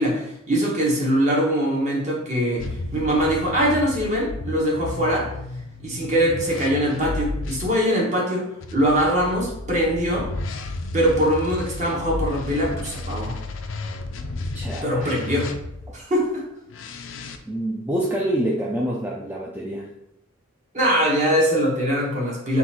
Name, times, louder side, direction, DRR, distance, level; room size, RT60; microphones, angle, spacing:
voice 1, 0.0-2.7 2.9-5.3 5.8-10.3 10.9-13.3 14.8-15.5 15.9-16.4 20.7-22.6, equal, 35° right, -3 dB, 1.2 m, -22 dB
sound 1, 2.6-7.7 8.6-16.0 16.7-17.4, left 2 dB, 65° left, 0.4 m, -32 dB
voice 2, 14.5-15.2 17.5-19.9, right 1 dB, 10° right, -4 dB, 0.4 m, -26 dB
3.9 x 2.5 x 4.2 m, 0.82 s
head